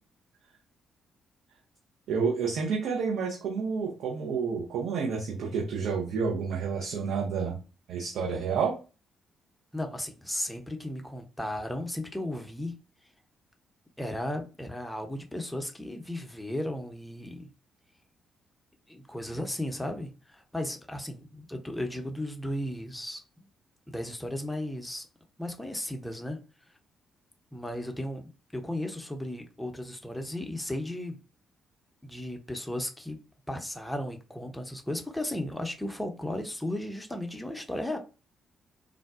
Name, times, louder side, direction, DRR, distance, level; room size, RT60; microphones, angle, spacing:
voice 1, 2.1-7.6 7.9-8.7, right 5 dB, 65° right, -2 dB, 0.7 m, -29 dB
voice 2, 9.7-12.7 14.0-17.5 18.9-23.2 23.9-25.1 25.4-26.4 27.5-31.2 32.0-33.2 33.5-38.0, left 1 dB, 5° left, 4 dB, 0.7 m, -35 dB
3.6 x 2.2 x 2.3 m, 0.33 s
hypercardioid pair, 40°, 0 cm